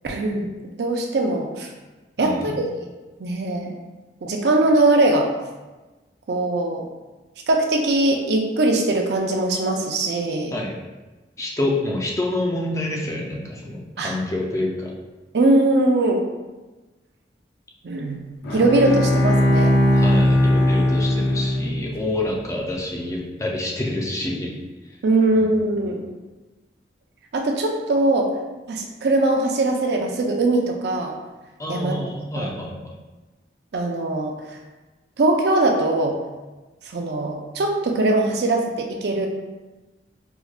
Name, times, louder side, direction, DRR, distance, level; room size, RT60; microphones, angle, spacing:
voice 1, 0.0-0.5 0.8-1.7 2.2-2.5 3.2-3.7 4.2-5.3 6.3-6.9 7.5-10.5 14.0-14.2 15.3-16.2 17.8-18.2 18.5-19.8 25.0-26.0 27.3-28.3 28.7-31.2 31.7-32.0 32.4-32.5 33.7-34.6 35.2-36.2 36.9-39.3, right 2 dB, 70° right, 2 dB, 0.4 m, -21 dB
voice 2, 2.2-2.5 10.5-10.7 11.4-14.9 19.9-24.5 25.4-25.5 25.8-25.9 31.6-33.0, left 1 dB, 20° left, -1 dB, 0.4 m, -27 dB
Bowed string instrument, 18.4-22.0, left 1 dB, 70° left, 0.5 m, -19 dB
4.6 x 2.1 x 2.3 m, 1.2 s
head